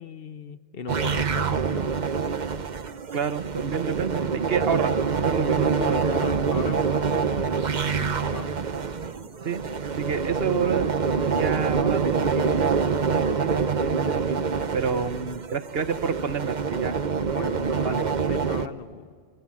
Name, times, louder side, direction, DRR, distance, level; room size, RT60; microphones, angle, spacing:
voice 1, 0.0-2.2 5.8-8.6 15.0-15.2 17.3-18.0 18.3-19.1, left 6 dB, 65° left, 13 dB, 1.1 m, -38 dB
sound 1, 0.9-18.7, right 5 dB, 45° right, 1.0 m, -26 dB
voice 2, 3.1-6.5 9.4-9.6 10.0-12.7 13.1-14.4 14.7-16.9 17.8-18.1, right 6 dB, 65° right, 12 dB, 1.2 m, -29 dB
Telephone, 9.8-14.8, equal, 85° left, 5.2 m, -48 dB
26.5 x 24.0 x 8.5 m, 2.1 s
omnidirectional pair, 1.1 m